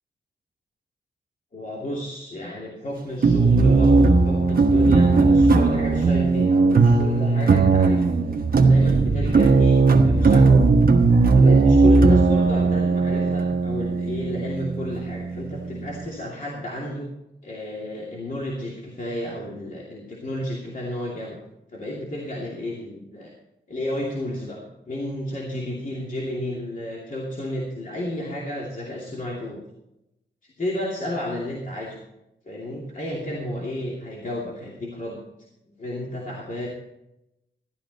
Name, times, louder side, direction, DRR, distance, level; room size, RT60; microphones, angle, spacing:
voice 1, 1.5-8.1 8.6-10.6 11.3-17.1 17.4-21.4 21.7-23.3 23.7-24.6 24.9-29.6 30.6-32.0 32.5-35.2 35.8-36.7, left 1 dB, 45° left, -3 dB, 2.7 m, -32 dB
sound 1, 3.2-16.1, right 3 dB, 55° right, 1.3 m, -17 dB
14.5 x 12.0 x 4.1 m, 0.88 s
wide cardioid pair, 100°, 18 cm